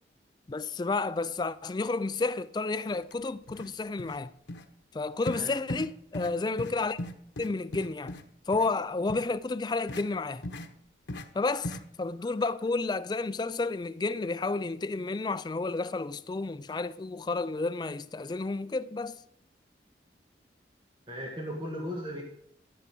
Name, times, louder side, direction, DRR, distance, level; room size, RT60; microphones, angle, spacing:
voice 1, 0.5-4.3 4.9-7.0 7.4-8.2 8.5-10.4 11.3-19.2, left 3 dB, 25° left, 0.3 m, -31 dB
sound 1, 3.0-3.1 3.5-3.7 4.0-4.2 4.5-4.6 5.3-5.4 5.7-5.9 6.1-6.3 6.6-6.7 7.0-8.2 8.5-8.7 9.1-9.2 9.9-10.0 10.4-10.7 11.1-11.2 11.6-11.8, left 1 dB, 90° left, 1.0 m, -37 dB
voice 2, 21.1-22.2, equal, 25° right, 1.8 m, -36 dB
13.0 x 7.2 x 6.0 m
head